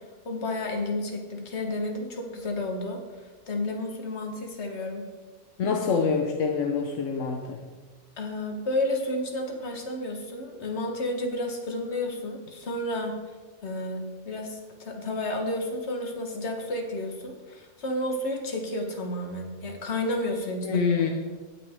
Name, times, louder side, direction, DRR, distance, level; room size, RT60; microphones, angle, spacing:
voice 1, 0.2-5.0 8.2-13.2 13.6-20.8, left 1 dB, 65° left, 3 dB, 1.6 m, -31 dB
voice 2, 5.6-7.6 20.6-21.1, left 5 dB, 85° left, 3 dB, 1.2 m, -25 dB
17.5 x 6.0 x 3.5 m, 1.3 s
omnidirectional pair, 1.3 m